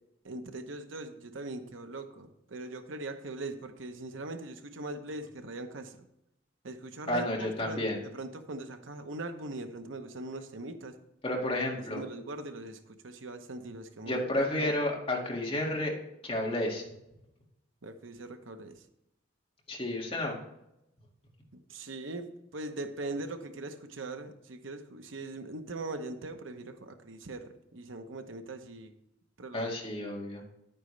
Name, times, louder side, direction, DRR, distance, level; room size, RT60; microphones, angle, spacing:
voice 1, 0.2-6.0 6.6-11.0 11.9-14.2 17.8-18.8 21.7-22.3 22.5-28.9 29.4-29.7, right 2 dB, 85° right, 7 dB, 1.0 m, -41 dB
voice 2, 7.1-8.0 11.2-12.0 14.1-16.0 16.2-16.8 19.7-20.4 29.5-30.4, left 1 dB, 30° left, -1 dB, 2.0 m, -31 dB
10.5 x 9.0 x 3.3 m, 0.84 s
head